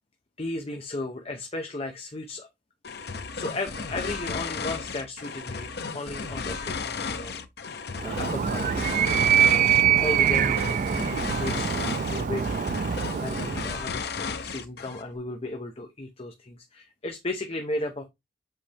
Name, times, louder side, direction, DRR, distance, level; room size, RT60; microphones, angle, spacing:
voice 1, 0.4-2.5 3.3-7.4 7.7-8.8 9.4-10.6 10.9-12.9 13.2-18.1, left 2 dB, 35° left, 0.9 m, -35 dB
sound 1, 2.8-15.1, left 5 dB, 65° left, 0.8 m, -34 dB
Animal, 8.0-13.8, right 9 dB, 45° right, 0.3 m, -24 dB
7.6 x 4.2 x 3.4 m
head